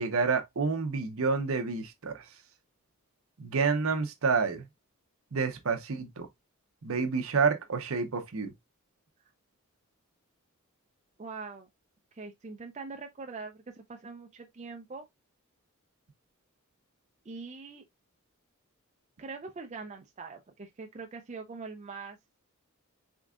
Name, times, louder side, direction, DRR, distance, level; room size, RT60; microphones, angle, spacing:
voice 1, 0.0-2.3 3.4-4.7 5.3-6.3 6.8-8.5, right 4 dB, 70° right, 0.7 m, -29 dB
voice 2, 11.2-11.7 12.1-15.0 17.3-17.8 19.2-22.2, right 4 dB, 30° right, 0.4 m, -43 dB
3.7 x 3.6 x 2.2 m
head